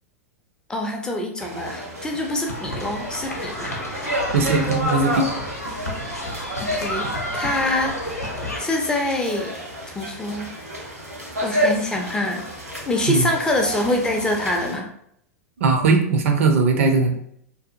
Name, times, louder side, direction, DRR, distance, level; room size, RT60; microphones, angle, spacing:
voice 1, 0.7-3.8 6.6-7.1 7.3-7.9 8.6-9.5 9.9-10.5 11.4-12.4 12.9-14.9, left 1 dB, 10° left, 1 dB, 0.4 m, -25 dB
sound 1, 1.4-14.7, equal, 80° right, 1.0 m, -31 dB
sound 2, 2.5-8.6, left 1 dB, 90° left, 0.6 m, -30 dB
voice 2, 4.3-5.2 13.1-13.3 15.6-17.1, right 4 dB, 55° right, 4 dB, 0.5 m, -19 dB
2.6 x 2.3 x 2.5 m, 0.68 s
figure-of-eight pair, 95°, 8 cm